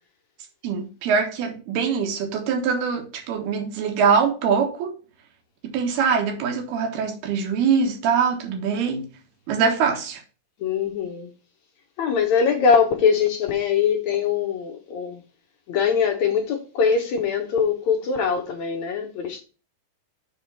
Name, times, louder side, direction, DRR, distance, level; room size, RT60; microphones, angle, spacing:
voice 1, 0.6-4.9 5.6-9.1 9.5-10.2, right 6 dB, 85° right, 3.4 m, -23 dB
voice 2, 10.6-11.3 12.0-15.2 15.7-19.4, left 6 dB, 65° left, 1.9 m, -22 dB
6.6 x 4.9 x 5.6 m
omnidirectional pair, 4.4 m